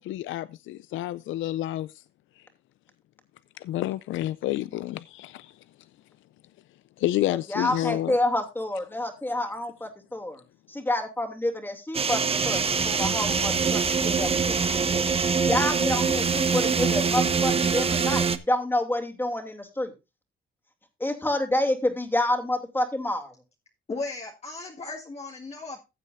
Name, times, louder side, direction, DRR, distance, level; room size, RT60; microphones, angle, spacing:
voice 1, 0.0-2.0 3.6-5.5 7.0-8.2 12.5-12.7 13.4-13.5, left 14 dB, 75° left, 0.4 m, -29 dB
voice 2, 7.5-10.4 10.7-15.0 15.5-19.9 21.0-23.3, left 1 dB, 10° left, 2.7 m, -28 dB
sound 1, 11.9-18.4, right 5 dB, 30° right, 0.9 m, -24 dB
voice 3, 23.9-25.8, left 3 dB, 30° left, 1.9 m, -36 dB
15.0 x 8.1 x 2.6 m
cardioid pair, 90°, 20 cm